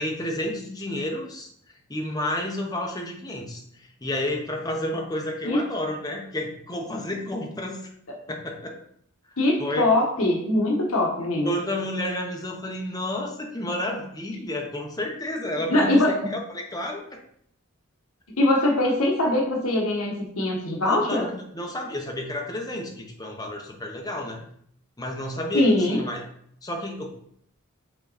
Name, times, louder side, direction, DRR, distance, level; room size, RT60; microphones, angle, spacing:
voice 1, 0.0-1.5 1.9-7.9 8.3-8.8 9.6-9.9 11.4-17.0 20.8-24.4 25.0-26.2 26.6-27.1, left 1 dB, 15° left, 0 dB, 1.0 m, -31 dB
voice 2, 9.4-11.5 15.7-16.3 18.4-21.3 25.5-26.0, left 1 dB, 70° left, -1 dB, 1.3 m, -22 dB
6.3 x 3.9 x 4.1 m, 0.68 s
head